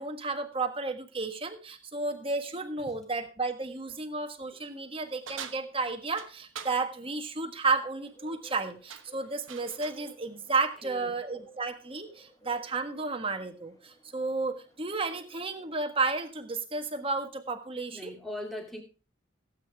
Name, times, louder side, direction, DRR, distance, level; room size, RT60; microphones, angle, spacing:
voice 1, 0.0-18.1, right 3 dB, 25° right, 1.4 m, -32 dB
sound 1, 5.3-6.8 8.3-8.6 8.9-10.1, right 7 dB, 80° right, 1.2 m, -44 dB
Bird, 8.0-16.3, right 3 dB, 20° left, 3.4 m, -57 dB
voice 2, 10.8-11.2 12.2-12.3 17.9-18.8, left 1 dB, ahead, 2.6 m, -40 dB
16.5 x 8.7 x 3.5 m
head